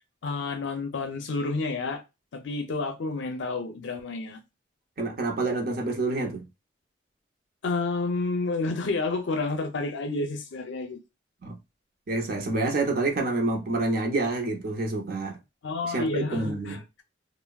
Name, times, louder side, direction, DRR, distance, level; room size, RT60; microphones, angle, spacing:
voice 1, 0.2-2.0 2.3-4.4 7.6-11.0 15.6-16.8, left 3 dB, 80° left, 0.5 m, -30 dB
voice 2, 5.0-6.5 11.4-11.6 12.1-15.4 15.8-16.8, right 2 dB, 55° right, 0.6 m, -28 dB
3.3 x 2.0 x 2.2 m
head